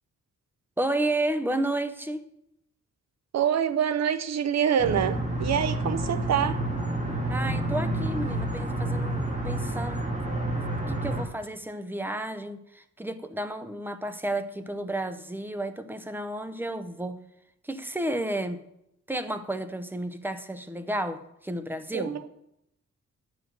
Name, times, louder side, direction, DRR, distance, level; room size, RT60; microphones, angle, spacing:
voice 1, 0.8-2.2 7.3-10.0 10.9-17.2 17.6-18.6 19.1-22.2, right 1 dB, 5° right, 0.7 m, -32 dB
voice 2, 3.3-6.6 21.9-22.2, right 8 dB, 65° right, 0.8 m, -26 dB
sound 1, 4.8-11.2, right 1 dB, 25° right, 2.3 m, -29 dB
10.5 x 5.1 x 7.7 m
wide cardioid pair, 125°, 29 cm